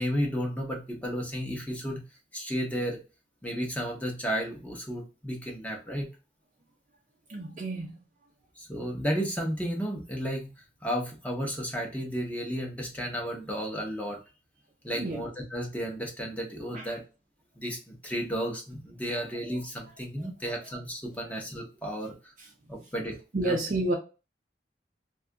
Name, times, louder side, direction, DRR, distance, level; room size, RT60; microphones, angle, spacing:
voice 1, 0.0-2.0 2.3-3.0 3.4-6.1 8.6-10.5 10.8-14.2 14.8-17.0 17.6-22.3 22.7-23.2 23.4-23.6, equal, 10° left, 0.8 m, -33 dB
voice 2, 7.3-7.9 14.9-15.2 16.7-16.9 22.4-22.5 23.3-23.9, right 2 dB, 45° right, 0.5 m, -30 dB
2.7 x 2.3 x 3.5 m
head